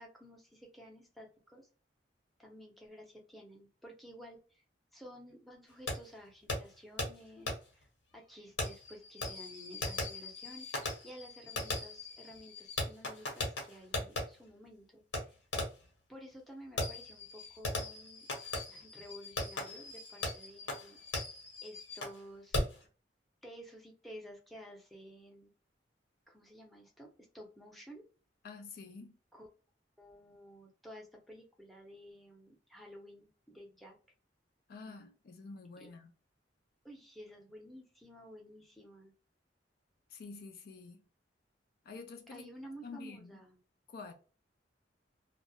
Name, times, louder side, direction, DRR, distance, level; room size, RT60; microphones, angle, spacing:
voice 1, 0.0-1.7 2.4-4.6 4.9-7.9 8.1-15.4 16.1-18.3 18.7-21.0 21.6-22.6 23.4-25.5 26.3-27.1 27.3-28.0 29.3-29.5 30.0-34.0 35.8-35.9 36.8-39.1 42.3-43.6, equal, ahead, 0.7 m, -52 dB
Fireworks, 5.9-6.0 6.5-6.6 7.0-7.1 7.5-7.6 8.6-14.2 15.1-15.2 15.5-15.8 16.8-22.2 22.5-22.8, left 2 dB, 90° left, 1.0 m, -38 dB
voice 2, 28.4-29.1 34.7-36.1 40.1-41.0 41.8-42.5 42.8-43.4 43.9-44.1, left 4 dB, 55° left, 0.4 m, -48 dB
2.3 x 2.0 x 2.7 m
head